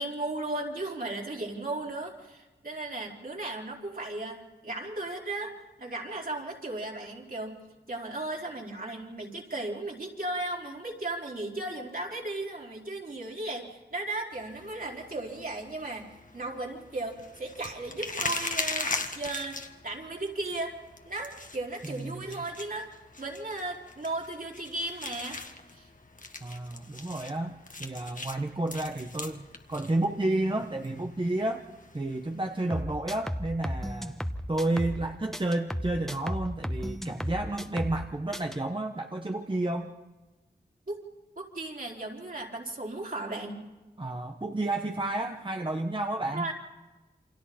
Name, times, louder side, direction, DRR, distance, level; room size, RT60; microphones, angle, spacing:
voice 1, 0.0-7.6 7.9-20.8 21.0-22.9 23.2-25.4 25.7-25.9 40.9-41.0 41.4-43.6 46.3-46.5, right 2 dB, 55° right, -2 dB, 4.4 m, -36 dB
sound 1, 14.3-32.8, left 3 dB, 45° left, 1.6 m, -41 dB
voice 2, 21.9-22.4 26.4-31.6 31.9-34.2 34.5-39.9 44.0-46.5, right 2 dB, 30° right, 4 dB, 1.1 m, -31 dB
sound 2, 32.7-35.1 35.3-38.1 38.3-38.6, equal, ahead, 1.2 m, -34 dB
28.5 x 26.0 x 4.4 m, 1.2 s
wide cardioid pair, 65°, 18 cm